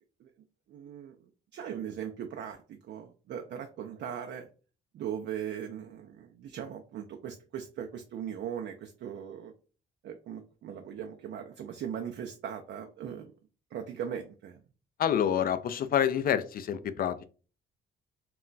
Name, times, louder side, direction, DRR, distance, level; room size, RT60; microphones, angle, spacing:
voice 1, 0.7-4.5 4.9-9.5 10.0-13.3 13.7-14.6, right 8 dB, 60° right, 3 dB, 0.4 m, -39 dB
voice 2, 15.0-17.2, left 9 dB, 50° left, 13 dB, 0.4 m, -27 dB
2.3 x 2.1 x 3.8 m, 0.37 s
cardioid pair, 90°, 20 cm